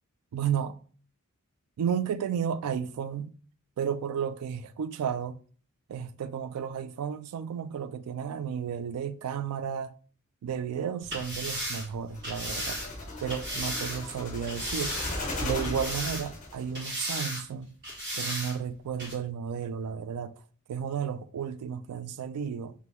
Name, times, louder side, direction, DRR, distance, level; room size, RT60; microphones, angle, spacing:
voice 1, 0.3-0.8 1.8-3.3 3.8-5.4 5.9-9.9 10.4-12.8 13.2-14.9 15.4-17.7 18.1-20.3 20.7-22.7, right 7 dB, 90° right, 0.3 m, -33 dB
sound 1, 11.0-14.0 14.5-15.3 15.6-16.4 16.7-17.4 17.8-18.5 19.0-19.1, equal, 45° right, 1.3 m, -35 dB
sound 2, 12.1-16.7, left 2 dB, 35° left, 1.0 m, -37 dB
3.3 x 2.6 x 3.0 m
head